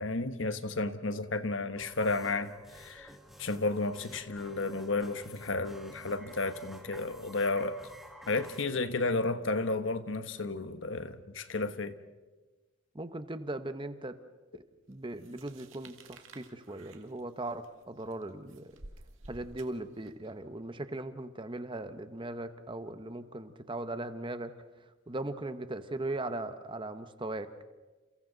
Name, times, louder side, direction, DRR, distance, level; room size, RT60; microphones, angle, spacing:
voice 1, 0.0-3.1 3.4-7.8 8.3-11.9, left 3 dB, 70° left, 1.2 m, -32 dB
sound 1, 1.8-8.6, equal, ahead, 2.1 m, -52 dB
voice 2, 12.9-14.2 14.5-14.6 14.9-18.7 19.3-24.5 25.1-27.5, right 2 dB, 25° right, 1.0 m, -39 dB
sound 2, 15.2-20.3, right 2 dB, 75° right, 1.9 m, -53 dB
30.0 x 29.5 x 4.0 m
head